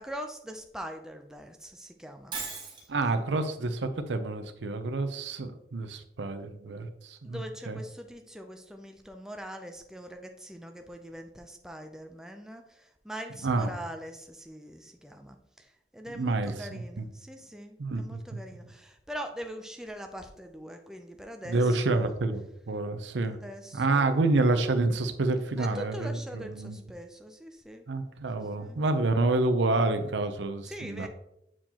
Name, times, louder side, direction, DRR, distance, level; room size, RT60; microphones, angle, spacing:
voice 1, 0.0-2.9 7.2-22.1 23.3-24.3 25.6-27.8 28.4-28.8 30.6-31.1, equal, 5° right, 4 dB, 0.4 m, -43 dB
Shatter, 2.3-2.9, right 4 dB, 25° right, 1.2 m, -36 dB
voice 2, 2.9-7.8 13.4-13.7 16.1-17.0 17.8-18.2 21.5-23.4 23.7-26.1 26.3-26.8 27.9-31.1, right 2 dB, 90° right, 8 dB, 0.6 m, -28 dB
7.4 x 4.5 x 2.9 m, 0.81 s
head